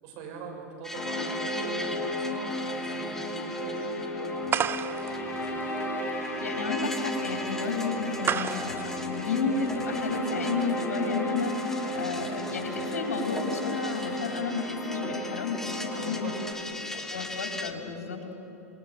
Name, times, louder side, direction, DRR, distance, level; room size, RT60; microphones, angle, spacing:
voice 1, 0.0-5.5 15.9-17.0, right 4 dB, 55° right, 2 dB, 6.5 m, -43 dB
guitar and vocoder, 0.8-17.7, left 1 dB, 5° left, 2.2 m, -42 dB
sound 1, 0.9-16.5, left 1 dB, 25° left, 7.7 m, -33 dB
sound 2, 4.5-10.1, right 9 dB, 30° right, 0.7 m, -34 dB
voice 2, 6.4-16.2 16.9-18.3, left 4 dB, 80° left, 2 dB, 4.6 m, -32 dB
28.0 x 21.0 x 9.4 m, 2.9 s
hypercardioid pair, 90°, 8 cm